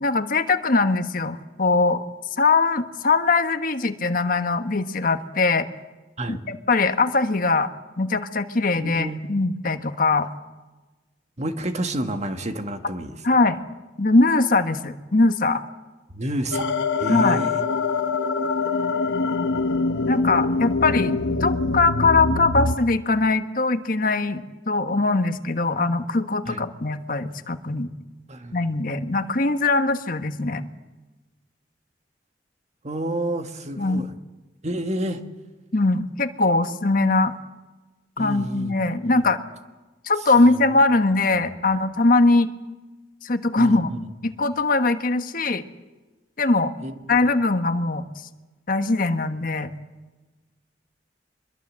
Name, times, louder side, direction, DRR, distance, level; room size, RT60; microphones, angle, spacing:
voice 1, 0.0-2.0 2.4-5.7 6.3-7.7 8.0-10.3 13.2-13.6 14.0-15.6 17.1-17.4 20.1-27.9 28.5-30.7 33.8-34.1 35.7-37.3 38.2-39.4 40.0-42.5 43.2-43.9 44.2-45.6 46.4-46.7 47.1-48.0 48.7-49.7, left 3 dB, 55° left, 8 dB, 1.3 m, -21 dB
voice 2, 8.8-9.5 11.4-13.2 16.1-17.6 26.5-26.6 28.3-28.6 32.8-34.1 34.6-35.2 38.2-38.8 39.1-39.3 41.3-41.5 43.6-44.0 46.8-47.2, right 1 dB, 40° right, 7 dB, 1.8 m, -30 dB
sound 1, 16.5-22.8, left 3 dB, 80° left, 1.0 m, -24 dB
25.0 x 22.5 x 7.6 m, 1.2 s
head